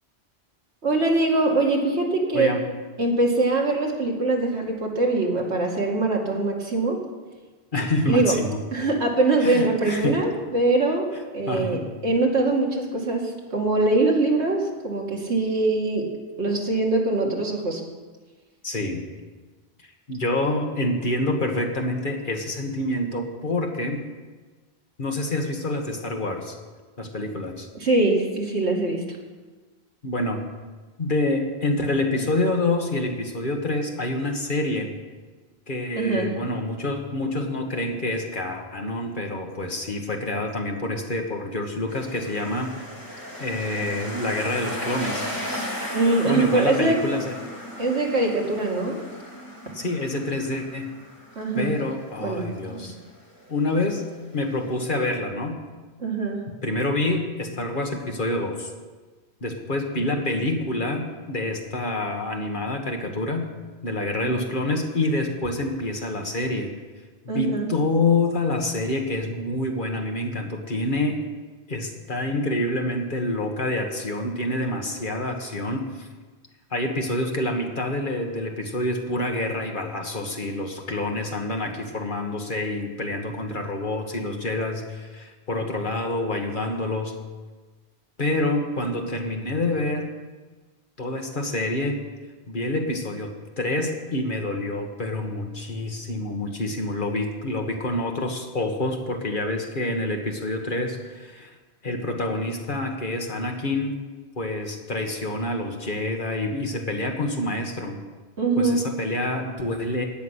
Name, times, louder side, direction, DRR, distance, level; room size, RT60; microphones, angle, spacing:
voice 1, 0.8-2.5 3.0-7.0 8.1-8.4 8.7-11.1 11.3-16.1 16.4-17.8 27.8-29.0 36.0-36.3 45.9-47.0 47.8-49.0 51.4-51.7 52.2-52.9 56.0-56.4 64.2-64.4 67.3-67.7 108.4-108.8, right 2 dB, 85° right, -1 dB, 2.5 m, -23 dB
voice 2, 7.7-8.6 9.4-10.2 11.5-11.9 17.2-17.3 18.6-19.0 20.1-24.0 25.0-26.6 27.0-27.7 30.0-30.5 31.0-34.9 35.7-42.7 43.4-45.2 46.3-47.3 49.7-51.0 51.5-53.0 53.5-54.0 54.3-55.6 56.6-58.7 59.4-63.5 63.8-66.7 67.2-71.2 71.7-76.1 76.7-87.1 88.2-90.1 91.0-92.0 92.5-101.5 101.8-104.0 104.3-108.0 108.6-110.0, left 2 dB, 50° left, 3 dB, 1.7 m, -27 dB
sound 1, 41.9-55.0, equal, 20° left, 2.1 m, -36 dB
16.0 x 6.0 x 9.8 m, 1.3 s
omnidirectional pair, 1.1 m